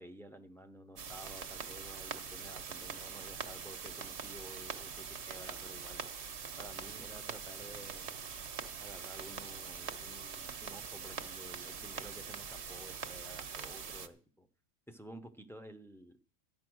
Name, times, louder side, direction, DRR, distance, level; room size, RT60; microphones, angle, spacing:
voice 1, 0.0-6.0 6.6-8.2 8.8-14.5 14.9-16.2, right 1 dB, ahead, 6 dB, 0.7 m, -52 dB
sound 1, 1.0-14.1, right 6 dB, 55° right, 1.2 m, -43 dB
13.0 x 9.5 x 6.3 m, 0.43 s
omnidirectional pair, 1.4 m